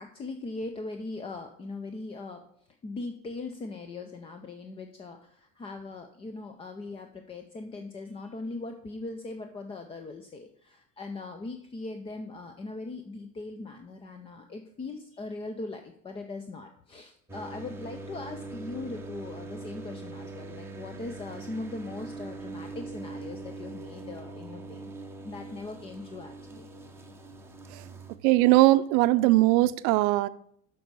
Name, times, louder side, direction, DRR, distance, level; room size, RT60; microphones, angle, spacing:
voice 1, 0.0-2.4 2.8-26.7, left 3 dB, 15° left, 6 dB, 0.3 m, -40 dB
sound 1, 17.3-28.2, right 3 dB, 5° right, 0.7 m, -42 dB
voice 2, 28.2-30.3, right 18 dB, 65° right, 14 dB, 0.6 m, -20 dB
7.7 x 5.3 x 6.6 m, 0.69 s
supercardioid pair, 130°, 44 cm